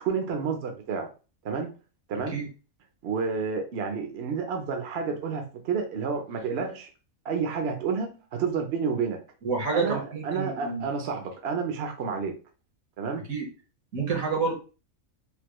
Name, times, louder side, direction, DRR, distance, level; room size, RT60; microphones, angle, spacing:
voice 1, 0.0-1.1 1.4-1.7 2.1-2.4 3.0-6.9 7.2-9.2 9.7-12.3 13.0-13.2, right 5 dB, 55° right, 4 dB, 0.8 m, -30 dB
voice 2, 9.4-10.8 13.3-13.5 13.9-14.5, right 4 dB, 75° right, 2 dB, 1.5 m, -28 dB
3.5 x 2.8 x 3.0 m, 0.33 s
omnidirectional pair, 1.4 m